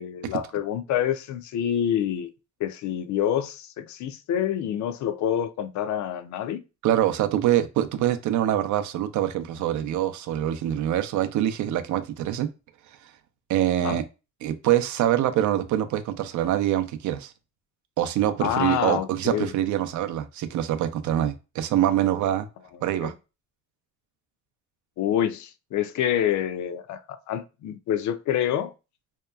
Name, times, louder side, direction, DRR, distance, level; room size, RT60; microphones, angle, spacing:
voice 1, 0.0-2.3 2.6-6.6 13.8-14.0 18.4-19.5 23.0-23.1 25.0-28.7, left 10 dB, 70° left, 0.4 m, -27 dB
voice 2, 6.8-12.5 13.5-14.0 14.4-17.3 18.0-22.5 22.8-23.1, right 12 dB, 75° right, 0.5 m, -24 dB
2.8 x 2.2 x 2.2 m
cardioid pair, 90°, 30 cm